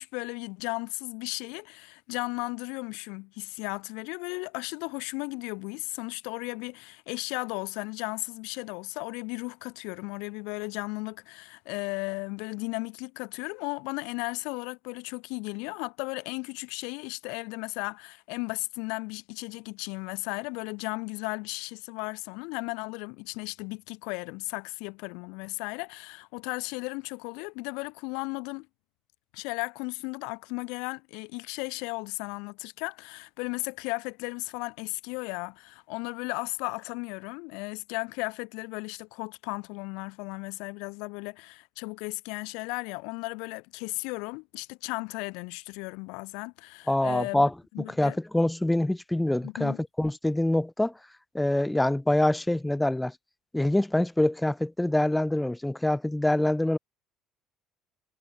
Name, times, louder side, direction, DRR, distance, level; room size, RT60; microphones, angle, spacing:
voice 1, 0.0-28.7 29.3-47.4 47.7-48.2 49.4-49.8, left 31 dB, 85° left, 5.5 m, -35 dB
voice 2, 46.9-47.5 47.8-50.9 51.3-53.1 53.5-56.8, left 1 dB, 5° left, 4.7 m, -25 dB
cardioid pair, 175°, 0 cm